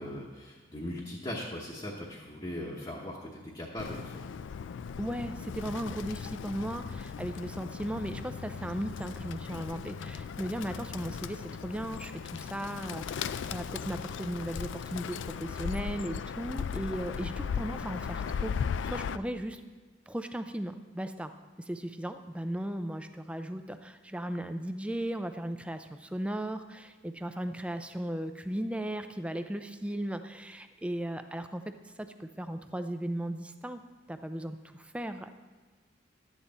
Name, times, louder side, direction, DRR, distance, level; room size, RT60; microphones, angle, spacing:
voice 1, 0.0-4.2, left 1 dB, 25° left, -4 dB, 1.0 m, -39 dB
Bird, 3.8-19.2, left 6 dB, 75° left, 0.3 m, -37 dB
voice 2, 5.0-18.5 18.8-19.6 20.1-21.3 21.6-33.8 34.1-35.3, right 1 dB, 5° right, 8 dB, 0.4 m, -36 dB
11.5 x 8.9 x 4.1 m, 1.3 s
head